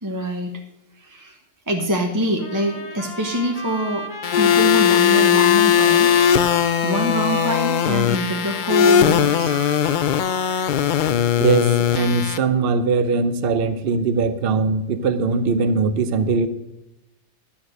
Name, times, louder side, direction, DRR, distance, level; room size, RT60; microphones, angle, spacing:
voice 1, 0.0-0.5 1.0-1.4 1.7-4.1 4.4-6.2 6.8-9.6, right 1 dB, 15° right, 2 dB, 0.9 m, -24 dB
Trumpet, 2.4-11.5, left 2 dB, 40° left, 1.3 m, -33 dB
sound 1, 4.2-12.4, left 9 dB, 60° left, 0.5 m, -18 dB
voice 2, 11.4-16.5, right 4 dB, 55° right, 11 dB, 0.9 m, -20 dB
11.5 x 7.2 x 6.4 m, 0.90 s
omnidirectional pair, 1.3 m